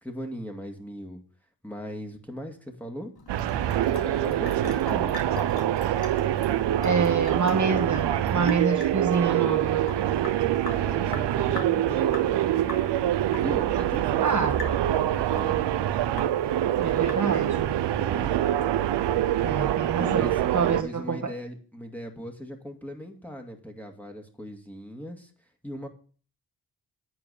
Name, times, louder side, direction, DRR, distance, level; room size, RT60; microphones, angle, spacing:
voice 1, 0.0-1.2 1.6-3.1 4.0-5.2 9.6-10.2 10.7-12.6 13.4-15.7 18.0-18.3 20.0-20.4 20.7-25.3 25.6-25.9, equal, 5° left, 2.1 m, -39 dB
Sink (filling or washing) / Drip, 3.2-17.6, left 3 dB, 60° left, 2.3 m, -43 dB
sound 1, 3.3-20.8, right 12 dB, 85° right, 0.6 m, -25 dB
voice 2, 6.8-9.9 14.2-14.6 16.8-17.7 19.4-21.3, right 5 dB, 45° right, 1.5 m, -27 dB
9.2 x 4.8 x 6.9 m
cardioid pair, 45°, 41 cm